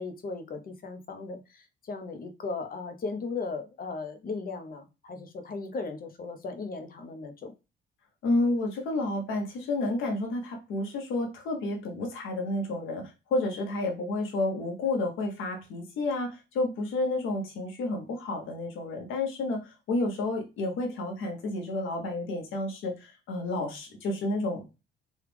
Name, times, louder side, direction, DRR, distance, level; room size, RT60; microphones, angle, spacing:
voice 1, 0.0-7.5, left 4 dB, 45° left, 0.7 m, -37 dB
voice 2, 8.2-24.8, left 2 dB, 85° left, 1.0 m, -30 dB
3.2 x 2.4 x 3.4 m
cardioid pair, 90°, 20 cm